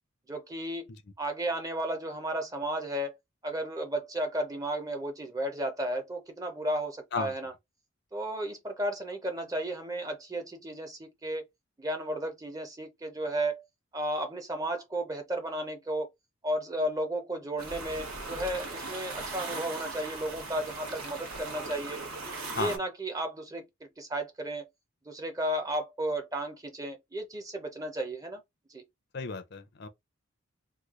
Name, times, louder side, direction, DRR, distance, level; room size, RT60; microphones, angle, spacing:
voice 1, 0.3-0.9 1.2-3.2 3.4-7.5 8.1-11.4 11.8-13.6 13.9-16.1 16.4-22.0 22.5-24.7 25.1-28.4 28.7-28.8, right 1 dB, 15° right, 0.6 m, -33 dB
sound 1, 17.6-22.8, right 3 dB, 85° right, 1.1 m, -39 dB
voice 2, 29.1-29.9, left 4 dB, 50° left, 0.5 m, -34 dB
3.1 x 2.3 x 3.6 m
head